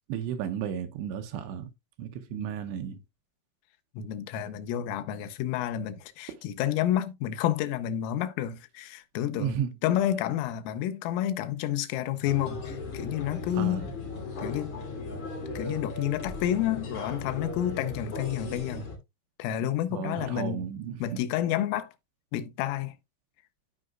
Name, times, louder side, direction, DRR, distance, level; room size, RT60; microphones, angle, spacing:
voice 1, 0.1-1.7 2.0-3.0 9.3-9.7 13.6-13.9 19.9-21.0, right 9 dB, 80° right, 2.6 m, -33 dB
voice 2, 3.9-13.9 14.4-14.7 15.6-18.9 19.4-20.7 21.0-21.9 22.3-22.9, left 11 dB, 85° left, 3.4 m, -30 dB
sound 1, 12.2-19.0, left 3 dB, 40° left, 2.9 m, -37 dB
14.5 x 4.9 x 2.3 m
omnidirectional pair, 5.8 m